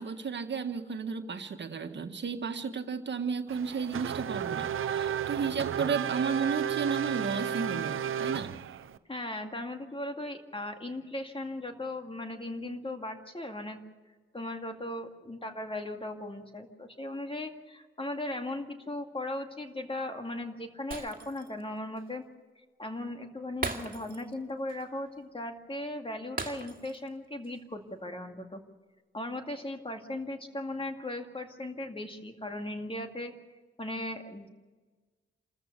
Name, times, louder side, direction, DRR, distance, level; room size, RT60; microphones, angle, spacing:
voice 1, 0.0-8.5, right 5 dB, 60° right, 7 dB, 1.6 m, -33 dB
Race car auto racing / Accelerating revving vroom, 3.5-9.0, right 9 dB, 75° right, 0.7 m, -33 dB
voice 2, 9.1-13.8 14.3-22.2 22.8-28.6 29.1-33.3 33.8-34.5, left 1 dB, 25° left, 5 dB, 2.2 m, -37 dB
Shatter, 20.9-21.6 22.0-22.1 23.6-24.4 24.7-24.9 26.4-27.1 27.4-27.6, right 3 dB, 45° right, 2.2 m, -38 dB
27.5 x 14.0 x 6.7 m, 1.3 s
cardioid pair, 55°, 21 cm